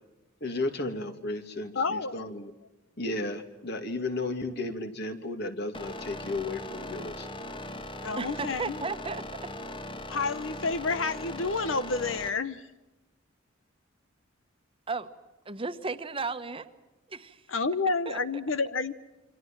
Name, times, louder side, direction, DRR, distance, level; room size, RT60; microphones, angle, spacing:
voice 1, 0.4-2.5 3.0-7.3, left 2 dB, 55° left, 7 dB, 2.6 m, -34 dB
voice 2, 1.7-2.2 8.0-8.8 10.1-12.7 17.5-18.9, left 4 dB, 75° left, 13 dB, 0.9 m, -29 dB
sound 1, 5.7-12.3, left 1 dB, 25° left, 1.4 m, -39 dB
voice 3, 8.2-9.2 14.9-15.1 15.4-16.7 17.1-17.4 18.1-18.2, right 4 dB, 25° right, 10 dB, 1.2 m, -34 dB
29.0 x 25.0 x 7.5 m, 1.0 s
head